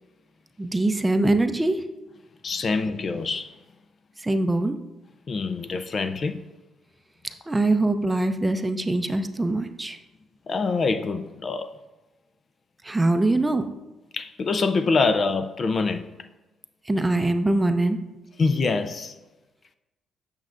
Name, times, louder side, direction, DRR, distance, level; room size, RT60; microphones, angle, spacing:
voice 1, 0.6-1.8 4.2-4.7 7.5-10.0 12.8-13.7 16.9-18.0, right 2 dB, 15° right, 0.5 m, -23 dB
voice 2, 2.4-3.5 5.3-6.4 10.5-11.7 14.1-16.1 18.4-19.2, left 4 dB, 45° left, 0.4 m, -25 dB
8.3 x 6.4 x 2.5 m
cardioid pair, 90°, 0 cm